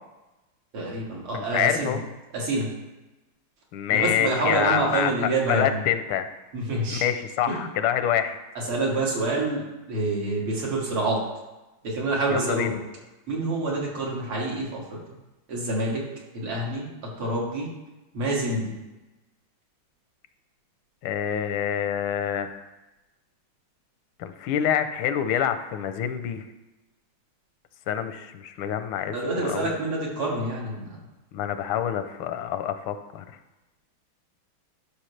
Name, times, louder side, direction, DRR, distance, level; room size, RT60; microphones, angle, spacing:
voice 1, 0.7-2.0 2.3-2.7 3.9-5.8 6.5-7.1 7.5-7.7 8.5-11.2 11.8-12.8 13.3-15.0 15.5-16.0 16.3-17.7 18.1-18.7 29.1-31.0, right 2 dB, 85° right, -4 dB, 2.9 m, -27 dB
voice 2, 1.3-2.0 3.7-5.1 5.5-6.3 6.9-8.4 12.3-12.7 21.0-22.6 24.2-26.4 27.9-29.7 31.3-33.3, left 9 dB, 85° left, 10 dB, 1.5 m, -26 dB
12.0 x 5.8 x 3.2 m, 1.1 s
omnidirectional pair, 2.2 m